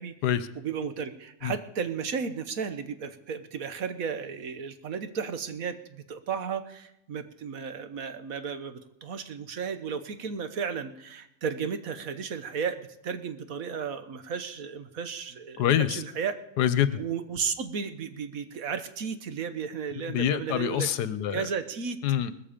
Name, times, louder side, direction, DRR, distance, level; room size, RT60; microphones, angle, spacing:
voice 1, 0.5-16.4 17.0-20.9 21.3-22.0, right 6 dB, 60° right, 10 dB, 1.4 m, -34 dB
voice 2, 15.6-16.0 16.6-17.0 20.0-21.5 22.0-22.3, left 10 dB, 80° left, 14 dB, 1.4 m, -26 dB
19.5 x 14.0 x 5.1 m, 0.84 s
omnidirectional pair, 1.7 m